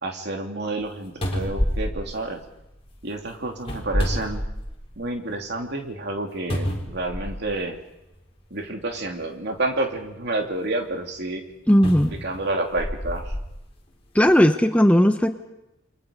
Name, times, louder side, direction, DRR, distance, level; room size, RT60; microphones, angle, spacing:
voice 1, 0.0-2.4 3.0-4.4 5.0-7.8 8.5-11.4 12.2-13.3, right 2 dB, 55° right, 3 dB, 3.0 m, -29 dB
sound 1, 0.8-0.9 1.2-2.9 3.6-5.0 5.4-5.5 6.5-7.6 8.6-8.7 11.8-13.5 14.2-14.3, equal, 30° left, 4.3 m, -28 dB
voice 2, 11.7-12.1 14.1-15.3, equal, 5° left, 7 dB, 0.8 m, -17 dB
29.5 x 24.0 x 5.3 m, 0.94 s
head